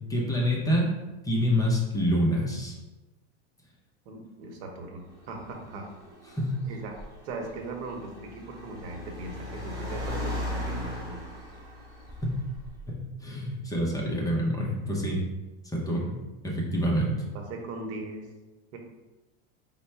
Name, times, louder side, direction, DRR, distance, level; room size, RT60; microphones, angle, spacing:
voice 1, 0.1-0.9 1.2-2.8 6.3-6.6 12.2-12.3 12.9-15.2 15.7-16.2 16.4-17.2, equal, 10° left, -3 dB, 0.6 m, -27 dB
voice 2, 4.1-5.9 6.7-7.0 7.2-11.3 17.3-18.3 18.7-18.8, right 2 dB, 75° right, 3 dB, 1.0 m, -39 dB
Car, 5.1-13.0, left 1 dB, 10° right, 1.4 m, -38 dB
4.5 x 2.2 x 4.3 m, 1.1 s
supercardioid pair, 135°, 34 cm